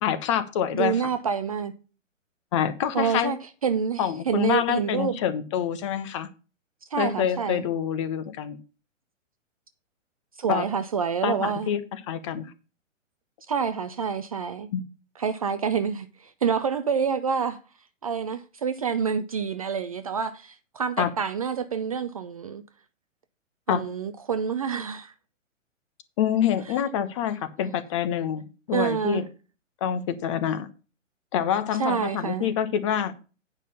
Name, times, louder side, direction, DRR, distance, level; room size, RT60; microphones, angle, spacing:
voice 1, 0.0-0.9 2.5-3.3 4.0-6.3 7.0-8.6 10.5-10.6 11.2-12.5 14.7-14.8 21.0-21.1 23.7-23.8 26.2-29.2 29.8-30.7 31.3-33.1, left 9 dB, 25° left, 0.7 m, -26 dB
voice 2, 0.7-1.7 2.9-3.4 3.6-5.2 6.9-7.6 10.4-11.7 13.5-14.7 15.2-17.6 18.0-22.6 23.7-25.1 28.7-29.2 31.8-32.6, right 6 dB, 30° right, 0.4 m, -27 dB
9.1 x 5.6 x 5.4 m
figure-of-eight pair, 125°, 39 cm